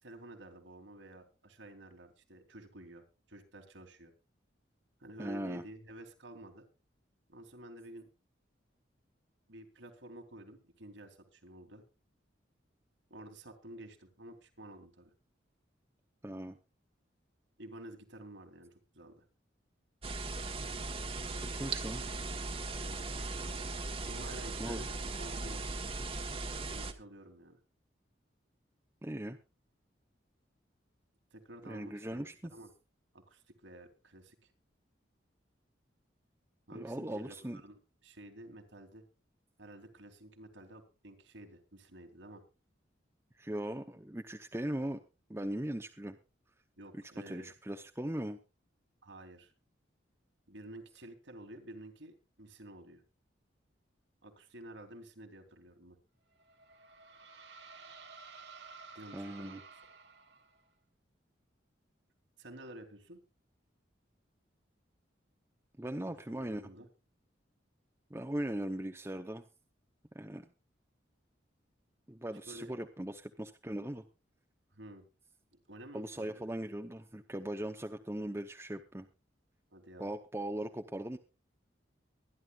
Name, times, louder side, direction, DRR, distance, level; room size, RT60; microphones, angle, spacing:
voice 1, 0.0-4.1 5.0-6.6 7.3-8.1 9.5-11.8 13.1-15.1 17.6-19.2 22.8-23.2 24.0-25.8 26.6-27.6 31.3-32.7 33.1-34.4 36.7-39.0 39.6-42.4 46.8-47.5 49.0-49.5 50.5-53.0 54.2-56.0 58.9-59.6 62.4-63.2 66.0-66.9 72.5-72.8 74.7-75.0 75.7-76.3 79.7-80.1, right 1 dB, 85° right, 4 dB, 3.1 m, -51 dB
voice 2, 5.2-5.6 16.2-16.6 21.5-22.0 24.6-24.8 29.0-29.4 31.7-32.5 36.7-37.6 43.4-45.0 45.3-46.2 47.3-48.4 59.1-59.6 65.8-66.6 68.1-69.4 70.1-70.5 72.1-74.0 75.9-79.1 80.0-81.2, right 1 dB, 15° right, 5 dB, 0.7 m, -39 dB
sound 1, 20.0-26.9, right 3 dB, 30° right, 1.2 m, -38 dB
sound 2, 56.4-60.7, right 4 dB, 65° right, 1.5 m, -53 dB
23.5 x 11.0 x 2.4 m, 0.29 s
head